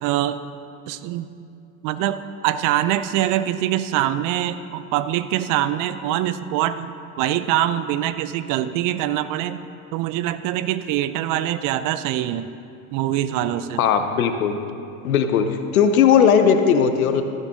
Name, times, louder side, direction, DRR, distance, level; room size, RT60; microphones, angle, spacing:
voice 1, 0.0-0.4 0.9-1.3 1.8-9.6 9.9-12.5 12.9-13.8, right 12 dB, 50° right, 13 dB, 0.6 m, -24 dB
voice 2, 13.8-14.6 15.0-17.2, left 7 dB, 85° left, 8 dB, 0.8 m, -17 dB
14.5 x 6.6 x 3.7 m, 2.5 s
hypercardioid pair, 75°, 42 cm